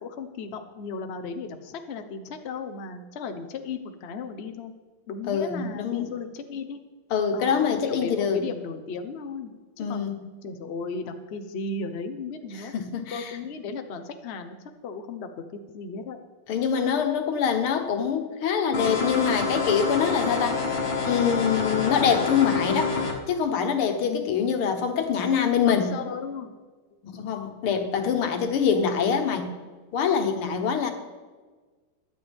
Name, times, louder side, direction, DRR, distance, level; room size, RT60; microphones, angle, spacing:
voice 1, 0.0-4.7 5.1-6.8 7.3-10.1 10.4-12.7 13.1-16.2 24.0-24.3 25.6-26.6, left 4 dB, 45° left, 6 dB, 0.8 m, -35 dB
voice 2, 5.3-6.1 7.1-8.4 9.8-10.1 12.7-13.2 16.5-20.6 21.1-22.9 23.3-25.9 27.0-29.5 29.9-30.9, left 7 dB, 85° left, 6 dB, 2.1 m, -24 dB
sound 1, 18.7-23.1, left 4 dB, 65° left, 2.1 m, -27 dB
22.5 x 8.2 x 3.5 m, 1.4 s
omnidirectional pair, 2.3 m